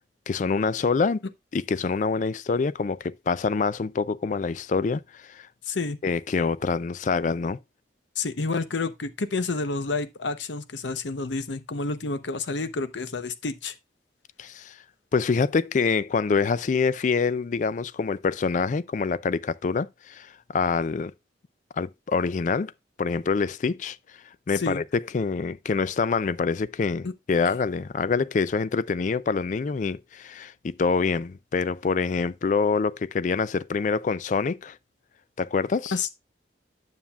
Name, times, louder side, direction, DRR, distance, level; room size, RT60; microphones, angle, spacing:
voice 1, 0.3-1.2 1.5-5.5 6.0-7.6 14.4-14.8 15.1-21.1 21.7-22.7 23.0-24.0 24.5-34.8 35.4-35.9, left 4 dB, 40° left, 0.3 m, -26 dB
voice 2, 5.6-6.0 8.2-13.7 24.5-24.8 27.0-27.1 35.9-36.1, left 3 dB, 80° left, 0.8 m, -29 dB
9.3 x 7.2 x 2.3 m
head